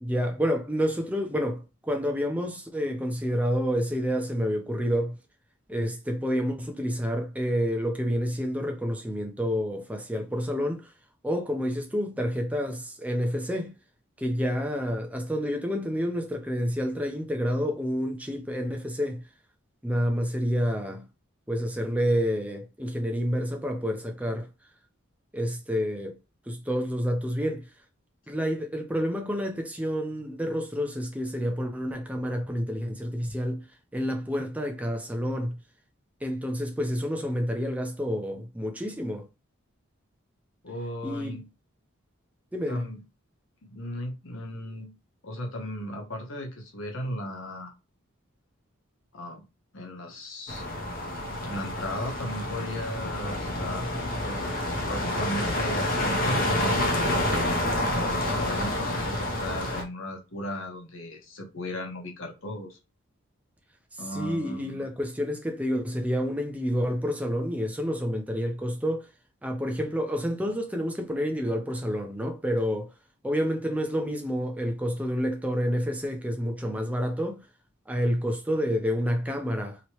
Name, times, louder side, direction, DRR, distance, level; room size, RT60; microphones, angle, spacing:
voice 1, 0.0-5.2 5.7-10.9 11.2-13.7 14.2-19.2 19.8-21.0 21.5-24.5 25.3-26.2 26.5-27.6 28.3-33.7 33.9-35.6 36.2-39.2 41.0-41.4 42.5-42.9 64.1-69.1 69.4-72.9 73.2-77.4 77.9-79.8, equal, 5° right, 0.5 m, -29 dB
voice 2, 40.6-41.4 42.7-43.0 43.6-44.9 45.2-47.7 49.1-49.4 49.7-50.6 51.4-53.8 54.2-54.4 54.9-56.9 57.9-62.8 64.0-64.9, left 1 dB, 70° left, 1.0 m, -36 dB
sound 1, 50.5-59.8, left 1 dB, 45° left, 0.8 m, -28 dB
3.0 x 2.9 x 3.0 m
head